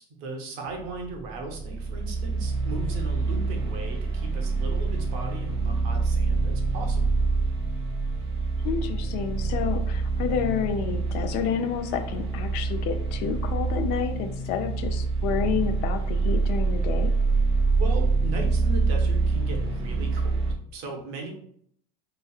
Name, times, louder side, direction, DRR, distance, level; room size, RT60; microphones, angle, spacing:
voice 1, 0.0-7.1 17.7-21.3, right 2 dB, 70° right, 2 dB, 0.9 m, -37 dB
sound 1, 0.7-20.5, right 3 dB, 30° right, 0.5 m, -26 dB
voice 2, 8.6-17.1, left 7 dB, 60° left, 8 dB, 0.4 m, -29 dB
3.1 x 2.4 x 2.3 m, 0.65 s
cardioid pair, 135°, 19 cm